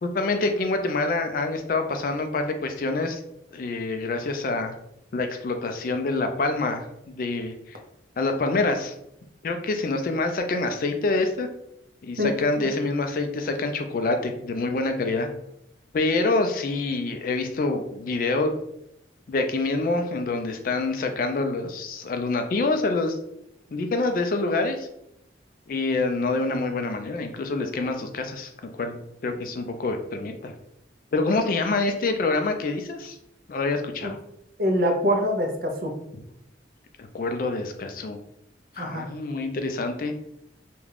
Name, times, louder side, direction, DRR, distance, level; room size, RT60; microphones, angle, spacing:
voice 1, 0.0-3.2 3.5-4.7 5.1-7.8 8.2-9.0 9.4-11.5 12.0-15.3 15.9-18.5 19.3-23.2 23.7-24.9 25.7-28.5 28.8-30.5 31.1-33.2 33.5-34.2 36.1-36.2 37.0-38.2 38.8-40.1, left 3 dB, 50° left, 6 dB, 0.3 m, -26 dB
voice 2, 34.6-35.9 38.8-39.1, equal, 50° right, 3 dB, 0.5 m, -24 dB
2.4 x 2.2 x 3.2 m, 0.79 s
head